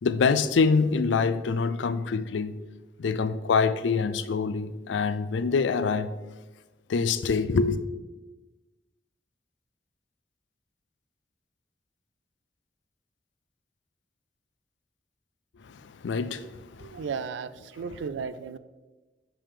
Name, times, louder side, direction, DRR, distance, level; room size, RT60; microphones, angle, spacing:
voice 1, 0.0-2.6 3.0-6.1 6.9-7.8 15.6-17.1, left 5 dB, 85° left, 0.4 m, -25 dB
voice 2, 16.8-18.6, right 6 dB, 85° right, 0.3 m, -35 dB
6.7 x 5.6 x 3.5 m
head